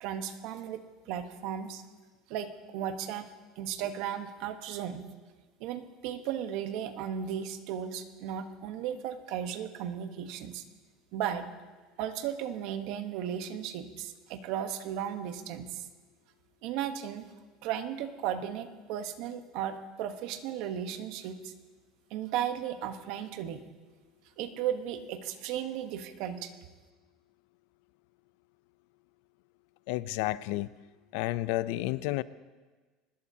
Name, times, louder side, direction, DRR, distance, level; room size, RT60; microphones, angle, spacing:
voice 1, 0.0-1.8 2.3-3.3 3.6-5.1 5.6-10.6 11.1-11.5 12.0-15.8 16.6-17.3 17.6-21.5 22.1-23.6 24.4-26.5, right 9 dB, 55° right, 1.1 m, -35 dB
voice 2, 29.9-30.7 31.1-32.2, left 17 dB, 70° left, 0.5 m, -31 dB
24.5 x 20.0 x 2.8 m
cardioid pair, 165°, 0 cm